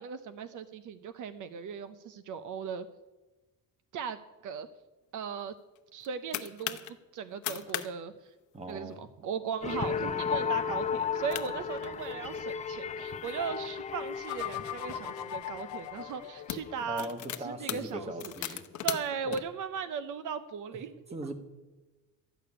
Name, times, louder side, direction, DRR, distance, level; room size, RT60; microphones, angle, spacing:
voice 1, 0.0-2.9 3.9-4.7 5.1-5.5 5.9-6.8 7.1-8.3 8.7-17.1 17.4-21.0, right 6 dB, 60° right, 11 dB, 0.7 m, -38 dB
sound 1, 5.8-6.9 7.3-8.2 8.6-8.9 9.5-9.7 10.2-10.3 11.0-11.1 11.3-12.5 13.1-15.0 15.7-15.9 16.2-19.4, left 12 dB, 55° left, 0.9 m, -39 dB
voice 2, 8.5-9.1 16.8-18.6 19.2-19.4 20.7-20.8 21.1-21.3, right 1 dB, 20° right, 8 dB, 1.1 m, -39 dB
sound 2, 9.6-16.6, left 6 dB, 20° left, 0.5 m, -34 dB
sound 3, 14.3-17.2, left 13 dB, 80° left, 1.1 m, -41 dB
13.0 x 6.8 x 9.7 m, 1.2 s
cardioid pair, 175°, 35 cm